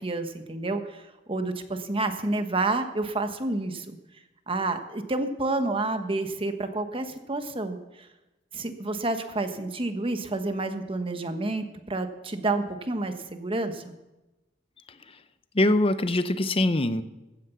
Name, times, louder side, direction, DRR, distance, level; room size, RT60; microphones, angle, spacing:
voice 1, 0.0-4.0 4.5-8.1 8.5-13.9, right 2 dB, 30° right, 7 dB, 1.2 m, -29 dB
voice 2, 15.5-17.0, left 1 dB, 30° left, 12 dB, 0.7 m, -23 dB
15.0 x 9.6 x 7.0 m, 1.0 s
head